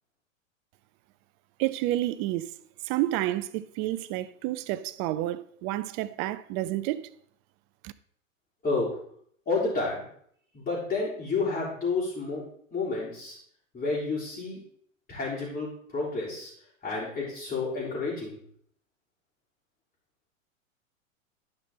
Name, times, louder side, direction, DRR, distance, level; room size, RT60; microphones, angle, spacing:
voice 1, 1.6-2.6 2.8-7.1 7.8-7.9, right 15 dB, 35° right, 0.5 m, -30 dB
voice 2, 8.6-9.0 9.5-10.0 10.5-12.4 12.7-13.4 13.7-14.6 15.1-16.5 16.8-18.4, left 3 dB, 20° left, 3.8 m, -30 dB
11.5 x 5.5 x 3.7 m
hypercardioid pair, 110°, 40 cm